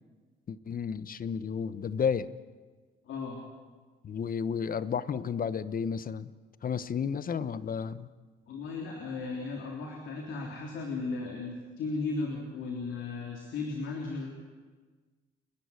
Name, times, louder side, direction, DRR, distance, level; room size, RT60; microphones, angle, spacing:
voice 1, 0.5-2.3 4.0-6.3 6.6-8.1, left 6 dB, 45° left, 15 dB, 1.0 m, -32 dB
voice 2, 3.1-3.4 8.5-14.3, left 3 dB, 80° left, 0 dB, 3.3 m, -36 dB
29.5 x 11.5 x 9.6 m, 1.4 s
cardioid pair, 90°, 20 cm